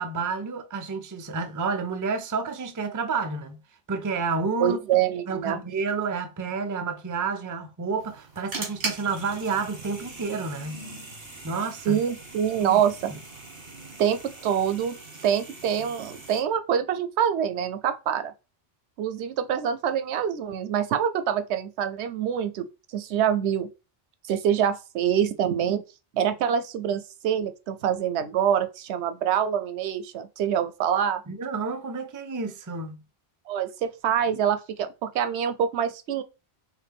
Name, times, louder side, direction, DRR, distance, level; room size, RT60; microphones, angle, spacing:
voice 1, 0.0-3.6 3.9-4.8 5.3-10.9 11.4-12.0 12.6-12.8 13.1-13.2 31.3-33.0, right 4 dB, 30° right, 0.3 m, -30 dB
voice 2, 4.6-5.6 11.9-13.1 14.0-15.0 15.2-18.3 19.0-22.7 22.9-23.7 24.3-25.8 26.1-31.2 33.5-36.2, right 9 dB, 85° right, 0.9 m, -25 dB
sound 1, 8.0-16.4, right 3 dB, 60° right, 1.9 m, -40 dB
4.7 x 3.2 x 3.5 m
omnidirectional pair, 1.1 m